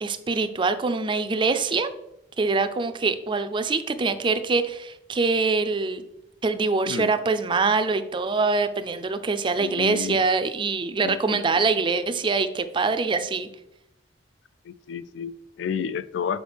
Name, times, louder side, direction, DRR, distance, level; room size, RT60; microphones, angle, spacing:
voice 1, 0.0-1.9 2.4-6.0 6.4-13.5, right 4 dB, 25° right, 0.4 m, -24 dB
voice 2, 9.6-10.2 11.0-11.6 14.6-16.4, left 7 dB, 85° left, 0.4 m, -31 dB
6.4 x 5.2 x 3.4 m
head